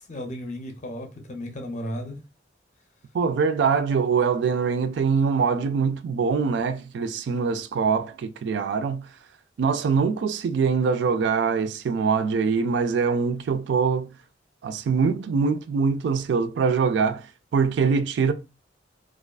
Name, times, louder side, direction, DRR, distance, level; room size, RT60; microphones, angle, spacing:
voice 1, 0.0-2.2, equal, 40° left, 0.5 m, -34 dB
voice 2, 3.1-9.1 9.6-14.1 14.6-17.3 17.5-18.3, right 5 dB, 70° right, 0.3 m, -23 dB
2.3 x 2.3 x 2.3 m
head